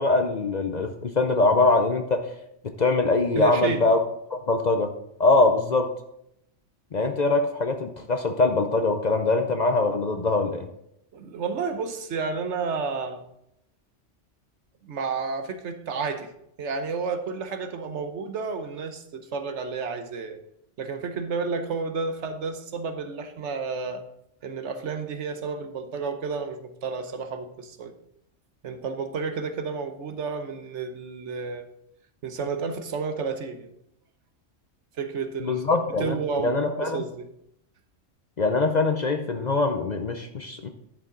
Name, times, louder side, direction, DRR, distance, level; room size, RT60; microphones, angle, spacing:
voice 1, 0.0-2.3 2.8-4.0 4.3-4.9 5.2-5.9 6.9-10.7 35.4-37.0 38.4-40.7, left 3 dB, 45° left, 6 dB, 0.6 m, -23 dB
voice 2, 3.3-3.9 11.1-13.2 14.8-16.3 16.6-20.4 20.8-24.0 24.4-27.9 28.6-31.7 32.2-33.7 35.0-37.3, right 5 dB, 70° right, 9 dB, 1.1 m, -31 dB
11.0 x 7.0 x 3.8 m, 0.78 s
omnidirectional pair, 1.3 m